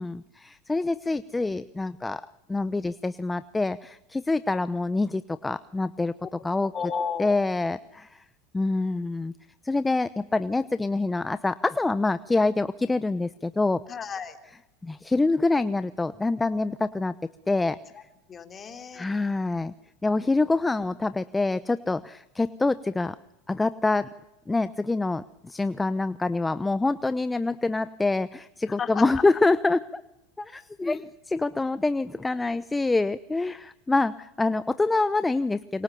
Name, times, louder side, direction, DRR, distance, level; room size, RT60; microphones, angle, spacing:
voice 1, 0.0-2.2 2.5-6.1 6.4-6.7 7.2-8.2 8.5-9.3 9.6-13.8 14.8-17.1 17.5-17.8 18.9-19.7 20.0-23.2 23.5-24.1 24.5-30.0 30.4-35.8, left 3 dB, 10° left, 15 dB, 0.8 m, -26 dB
voice 2, 6.7-7.4 13.9-14.4 17.9-18.0 18.3-19.1 28.7-29.2, left 6 dB, 30° left, 7 dB, 3.5 m, -33 dB
27.5 x 24.0 x 6.9 m, 0.94 s
hypercardioid pair, 90°, 0 cm